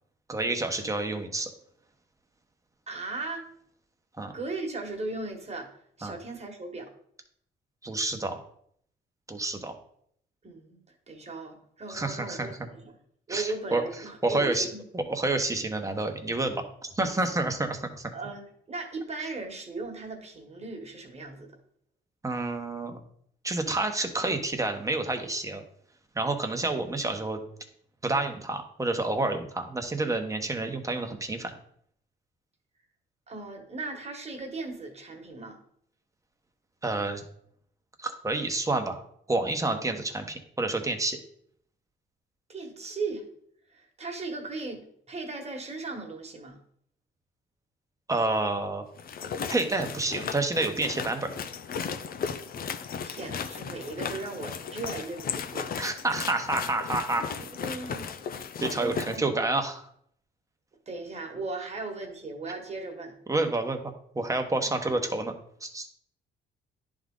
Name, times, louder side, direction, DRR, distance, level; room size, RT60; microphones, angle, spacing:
voice 1, 0.3-1.5 4.2-4.3 6.0-6.1 7.8-8.4 9.3-9.7 11.9-12.5 13.3-13.8 14.2-14.7 14.9-18.1 22.2-23.0 23.4-25.6 26.1-27.4 28.0-31.5 36.8-37.2 38.0-39.0 39.3-41.2 48.1-48.8 49.5-51.3 55.8-57.2 58.6-59.9 63.3-65.3 65.6-65.9, right 2 dB, 15° right, 5 dB, 1.1 m, -29 dB
voice 2, 2.9-3.5 4.3-5.7 6.0-6.9 10.4-10.8 11.1-12.9 13.3-14.8 18.1-21.5 33.3-35.6 42.5-43.2 43.7-46.6 53.0-55.9 57.5-58.1 58.8-59.3 60.9-63.1 64.6-64.7, right 3 dB, 35° right, 3 dB, 1.6 m, -37 dB
sound 1, 49.0-59.2, left 6 dB, 50° left, 0.6 m, -36 dB
10.5 x 3.7 x 3.8 m, 0.67 s
cardioid pair, 90°, 20 cm